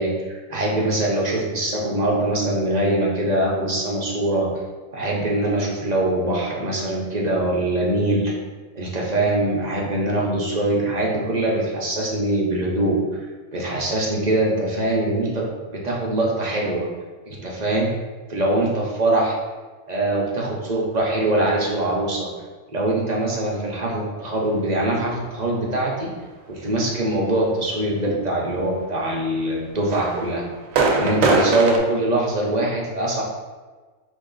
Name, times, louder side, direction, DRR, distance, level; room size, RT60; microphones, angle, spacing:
voice 1, 0.0-4.5 4.9-8.3 8.7-13.0 13.5-16.8 17.3-17.9 18.3-19.4 19.9-22.3 22.7-26.1 26.5-30.4 30.9-33.2, right 1 dB, 40° right, -3 dB, 0.8 m, -23 dB
sound 1, 29.9-31.8, right 3 dB, 90° right, 1.1 m, -21 dB
4.2 x 2.9 x 3.9 m, 1.3 s
omnidirectional pair, 1.3 m